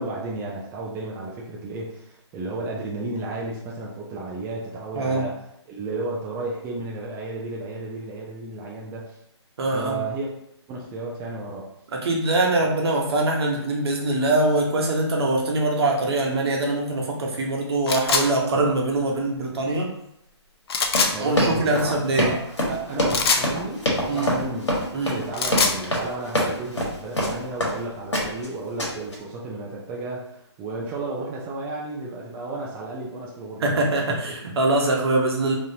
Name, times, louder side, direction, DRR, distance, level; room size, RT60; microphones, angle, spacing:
voice 1, 0.0-9.2 9.7-10.3 10.7-11.7 21.1-24.8 25.1-33.9 34.2-34.3, right 2 dB, 15° right, -3 dB, 0.5 m, -33 dB
voice 2, 9.6-10.0 11.9-19.9 21.2-22.3 24.1-24.3 24.9-25.2 33.6-35.5, right 2 dB, 60° right, 0 dB, 1.0 m, -23 dB
sound 1, 17.9-18.3 20.7-21.1 23.1-23.5 25.2-25.8, left 4 dB, 60° left, 0.5 m, -22 dB
Run, 20.8-27.8 28.1-28.5 28.8-29.1, left 1 dB, 90° left, 1.4 m, -25 dB
3.7 x 3.0 x 2.8 m, 0.76 s
hypercardioid pair, 140°, 15 cm